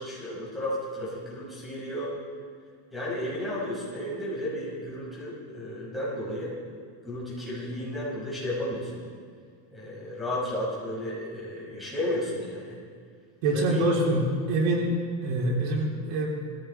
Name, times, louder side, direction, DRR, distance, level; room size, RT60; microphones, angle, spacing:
voice 1, 0.0-2.1 2.9-6.5 7.0-9.0 9.7-12.8 13.5-14.1, left 1 dB, ahead, -6 dB, 5.6 m, -33 dB
voice 2, 13.4-14.9 15.2-16.3, right 2 dB, 85° right, -1 dB, 3.4 m, -25 dB
19.0 x 15.5 x 4.5 m, 2.1 s
cardioid pair, 160°, 47 cm